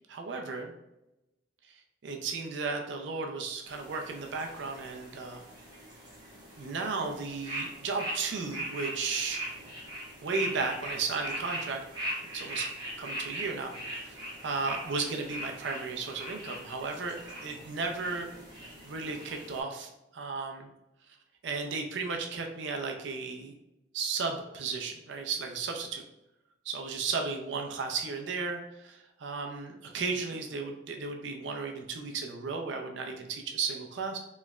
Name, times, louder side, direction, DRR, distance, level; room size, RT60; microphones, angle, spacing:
voice 1, 0.1-0.7 1.6-5.4 6.6-9.4 10.2-11.8 12.3-12.7 13.0-17.2 17.4-18.3 18.8-20.7 21.4-23.5 23.9-26.0 26.6-34.2, right 4 dB, 65° right, 3 dB, 0.5 m, -34 dB
sound 1, 3.7-19.6, right 1 dB, 20° right, 0.9 m, -40 dB
3.1 x 3.0 x 2.3 m, 0.92 s
head